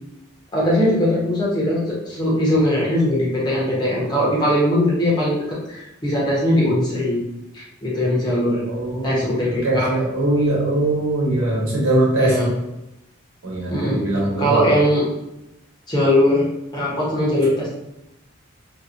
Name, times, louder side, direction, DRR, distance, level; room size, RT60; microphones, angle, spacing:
voice 1, 0.5-7.2 7.5-8.6 9.0-9.9 12.2-12.6 13.7-14.0 14.4-15.1 15.9-17.7, left 1 dB, 20° left, -6 dB, 0.7 m, -20 dB
voice 2, 8.7-12.5 13.4-14.8, right 1 dB, 85° right, -5 dB, 1.0 m, -21 dB
2.7 x 2.1 x 2.5 m, 0.89 s
head